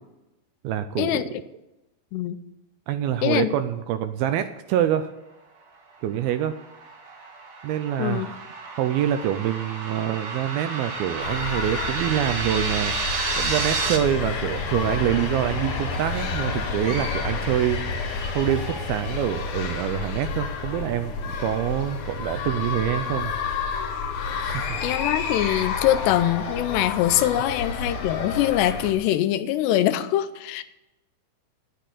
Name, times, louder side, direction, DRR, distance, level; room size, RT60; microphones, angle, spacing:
voice 1, 0.6-1.2 2.9-5.1 6.0-6.6 7.6-8.4 8.7-12.9 13.4-17.8 18.3-23.4 24.4-24.8, right 11 dB, 80° right, 10 dB, 2.2 m, -26 dB
sound 1, 6.3-14.0, right 4 dB, 65° right, 3.1 m, -31 dB
voice 2, 8.0-8.3 24.8-30.6, left 13 dB, 90° left, 12 dB, 2.8 m, -23 dB
sound 2, 11.1-23.0, left 3 dB, 50° left, 3.4 m, -34 dB
sound 3, 11.2-28.9, left 5 dB, 65° left, 3.3 m, -31 dB
10.5 x 9.9 x 6.7 m, 0.96 s
omnidirectional pair, 4.8 m